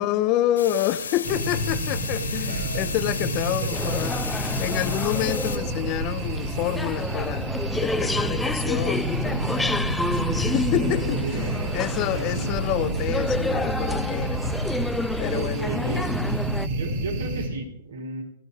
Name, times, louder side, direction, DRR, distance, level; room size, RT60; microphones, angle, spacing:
voice 1, 0.0-9.8 10.4-14.4 15.2-15.7, left 13 dB, 35° left, 1.0 m, -28 dB
sound 1, 0.6-5.6, left 6 dB, 85° left, 3.6 m, -34 dB
sound 2, 1.2-17.5, right 2 dB, 55° right, 5.2 m, -29 dB
voice 2, 1.3-1.7 2.1-2.9 3.2-3.8 10.8-11.7 12.1-12.5 15.3-16.1 16.7-18.2, right 3 dB, 75° right, 5.0 m, -35 dB
sound 3, 3.7-16.7, left 2 dB, 5° left, 0.5 m, -30 dB
21.5 x 15.0 x 3.6 m
hypercardioid pair, 125°, 0 cm